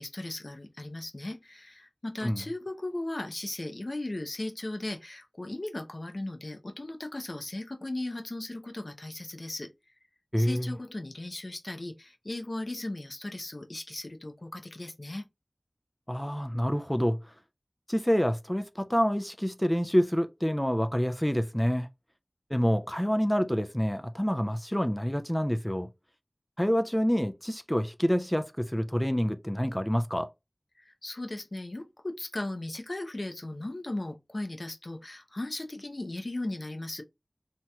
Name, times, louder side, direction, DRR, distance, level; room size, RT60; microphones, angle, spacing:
voice 1, 0.0-9.7 10.4-15.3 30.8-37.0, left 2 dB, 60° left, 0.5 m, -37 dB
voice 2, 10.3-10.8 16.1-17.2 17.9-21.9 22.5-25.9 26.6-30.3, equal, 10° left, 0.3 m, -27 dB
3.0 x 2.8 x 2.2 m
wide cardioid pair, 40°, 0 cm